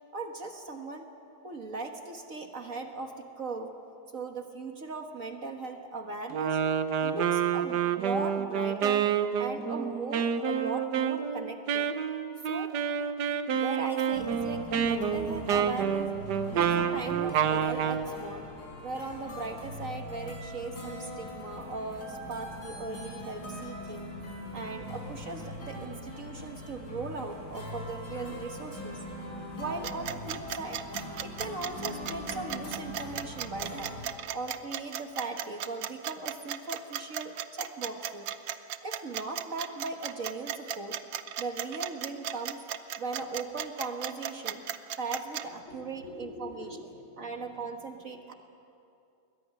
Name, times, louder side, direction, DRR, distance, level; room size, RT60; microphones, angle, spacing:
voice 1, 0.1-1.1 1.4-3.7 4.1-6.6 7.0-9.1 9.4-11.9 12.5-12.7 13.5-16.1 16.5-18.5 18.8-24.1 24.5-29.0 29.6-30.8 31.2-33.9 34.3-38.3 38.8-41.0 41.4-42.6 43.0-44.6 45.0-46.8 47.2-48.3, right 3 dB, 45° right, 4 dB, 1.8 m, -38 dB
Wind instrument woodwind instrument, 6.3-18.1, right 8 dB, 65° right, 1.6 m, -28 dB
sound 1, 14.1-34.1, left 1 dB, 85° left, 5.8 m, -41 dB
sound 2, 29.8-45.4, right 10 dB, 80° right, 1.6 m, -35 dB
voice 2, 45.7-47.5, left 3 dB, 60° left, 2 dB, 4.5 m, -46 dB
22.5 x 20.5 x 9.7 m, 2.6 s
omnidirectional pair, 2.0 m